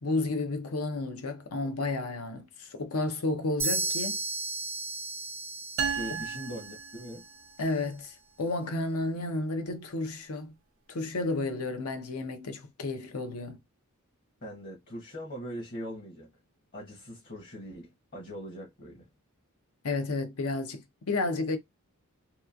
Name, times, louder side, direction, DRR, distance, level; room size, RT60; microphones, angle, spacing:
voice 1, 0.0-4.2 6.1-6.2 7.6-10.6 10.9-13.6 19.8-21.6, left 2 dB, 80° left, 0.7 m, -32 dB
sound 1, 3.6-7.4, right 3 dB, 10° right, 0.4 m, -34 dB
voice 2, 5.8-7.2 14.4-16.3 16.7-19.1, equal, 45° left, 0.9 m, -41 dB
sound 2, 5.8-7.6, right 7 dB, 65° right, 0.6 m, -34 dB
2.9 x 2.3 x 2.3 m
head